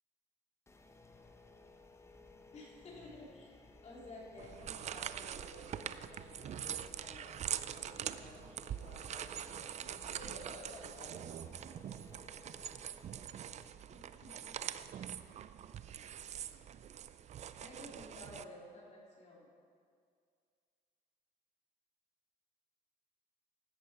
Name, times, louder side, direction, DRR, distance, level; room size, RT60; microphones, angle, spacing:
sound 1, 0.7-13.7, left 3 dB, 15° left, 0.9 m, -59 dB
voice 1, 2.5-7.4 7.7-9.7 10.1-11.6 13.9-14.4 17.6-19.5, left 1 dB, 40° left, -3 dB, 2.6 m, -54 dB
sound 2, 4.4-18.4, right 9 dB, 45° right, 0.4 m, -44 dB
13.5 x 10.0 x 4.5 m, 2.2 s
cardioid pair, 110°, 17 cm